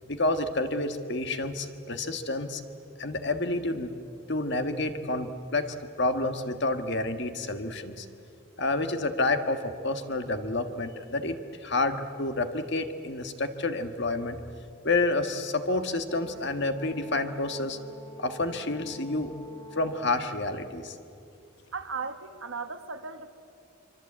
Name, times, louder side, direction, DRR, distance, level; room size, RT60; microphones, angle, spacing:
voice 1, 0.1-2.6 3.0-3.9 4.3-8.0 8.6-14.4 14.8-17.8 18.2-19.3 19.7-21.0, left 2 dB, 55° left, 8 dB, 1.6 m, -29 dB
Brass instrument, 16.1-20.3, left 2 dB, 20° left, 1.2 m, -47 dB
voice 2, 21.7-23.3, right 4 dB, 70° right, 8 dB, 1.6 m, -36 dB
25.0 x 24.5 x 8.7 m, 2.5 s
head